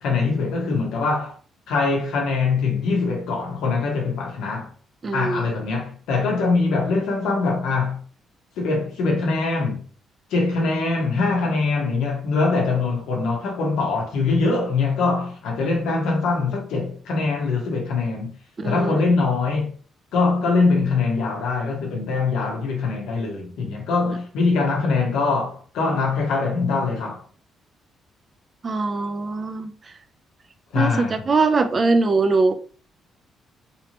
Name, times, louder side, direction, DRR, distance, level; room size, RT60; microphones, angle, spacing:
voice 1, 0.0-1.4 1.7-4.7 5.1-8.0 8.6-9.8 10.3-18.4 18.6-19.7 20.1-27.2 30.7-31.2, left 4 dB, 85° left, 1.1 m, -23 dB
voice 2, 5.0-5.4 18.6-19.0 28.6-29.7 30.7-32.5, right 3 dB, 35° right, 0.5 m, -21 dB
3.4 x 2.9 x 3.0 m
cardioid pair, 90°, 0 cm